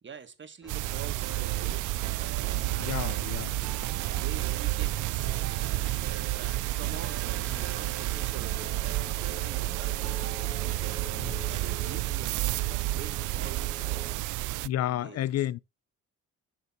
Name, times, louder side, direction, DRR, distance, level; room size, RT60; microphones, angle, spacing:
voice 1, 0.0-3.2 4.0-15.3, right 6 dB, 40° right, 1.7 m, -47 dB
sound 1, 0.6-14.1, equal, ahead, 1.2 m, -49 dB
sound 2, 0.7-14.7, right 17 dB, 85° right, 0.5 m, -31 dB
sound 3, 1.0-12.0, right 9 dB, 60° right, 1.1 m, -43 dB
voice 2, 2.7-3.6 11.1-11.5 14.6-15.6, left 12 dB, 55° left, 0.4 m, -31 dB
11.5 x 6.8 x 2.6 m
cardioid pair, 90°, 30 cm